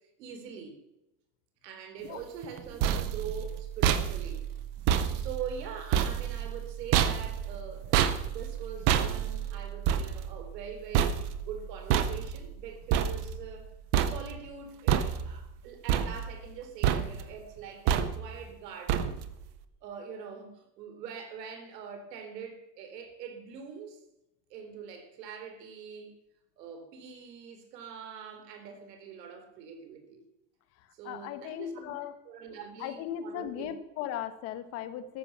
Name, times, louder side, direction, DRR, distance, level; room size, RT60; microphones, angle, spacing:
voice 1, 0.2-0.8 1.6-4.5 5.2-13.7 14.0-19.2 19.8-24.0 24.5-26.1 26.6-30.2 30.9-31.9 32.3-33.7, right 7 dB, 75° right, 4.0 m, -43 dB
sound 1, 2.4-13.7 13.9-14.5 14.9-15.5 15.9-16.6 16.8-17.4 17.9-18.4 18.9-19.4, right 9 dB, 20° right, 0.5 m, -29 dB
voice 2, 30.8-32.1 32.8-35.2, left 10 dB, 30° left, 1.3 m, -37 dB
13.5 x 11.5 x 7.4 m
supercardioid pair, 175°, 49 cm